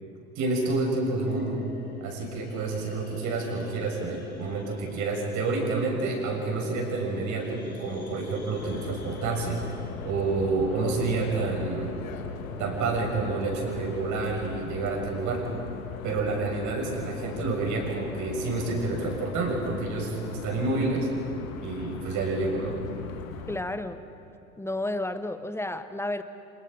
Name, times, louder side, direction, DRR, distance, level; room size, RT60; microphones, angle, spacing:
voice 1, 0.4-1.6 2.0-9.6 10.1-12.0 12.6-15.5 16.0-21.1 21.6-22.8, right 3 dB, 45° right, 0 dB, 6.8 m, -29 dB
sound 1, 1.2-21.2, left 3 dB, 85° left, 3.0 m, -45 dB
sound 2, 8.6-23.6, left 6 dB, 70° left, 2.1 m, -40 dB
voice 2, 23.5-24.0 24.6-26.2, left 1 dB, 5° left, 11 dB, 1.0 m, -31 dB
30.0 x 26.5 x 5.2 m, 2.6 s
figure-of-eight pair, 80°, 42 cm